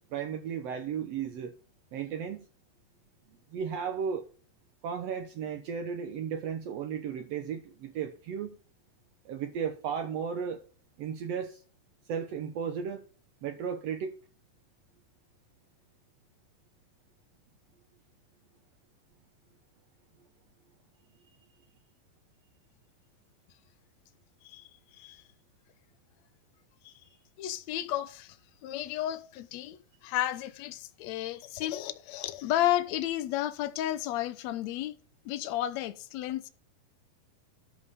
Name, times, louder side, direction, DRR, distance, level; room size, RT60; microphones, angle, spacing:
voice 1, 0.1-1.5 1.9-2.5 3.5-4.3 4.8-8.6 9.2-10.6 11.0-11.6 12.1-13.0 13.4-14.1, right 7 dB, 80° right, 1.4 m, -34 dB
voice 2, 24.4-25.2 26.8-26.9 27.4-28.4 28.6-35.0 35.2-36.5, left 13 dB, 80° left, 1.6 m, -32 dB
13.0 x 5.4 x 5.3 m
omnidirectional pair, 4.3 m